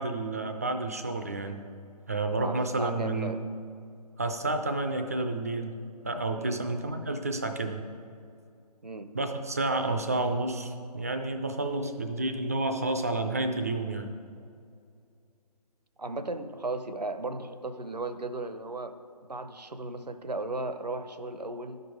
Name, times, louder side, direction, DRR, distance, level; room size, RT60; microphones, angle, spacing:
voice 1, 0.0-1.6 2.1-3.3 4.2-5.7 6.0-7.8 9.1-14.1, right 2 dB, 25° right, 6 dB, 0.4 m, -30 dB
voice 2, 2.4-3.4 6.4-6.6 8.8-9.1 16.0-21.8, right 2 dB, 80° right, 9 dB, 0.8 m, -36 dB
12.0 x 5.3 x 4.7 m, 2.4 s
figure-of-eight pair, 150°, 21 cm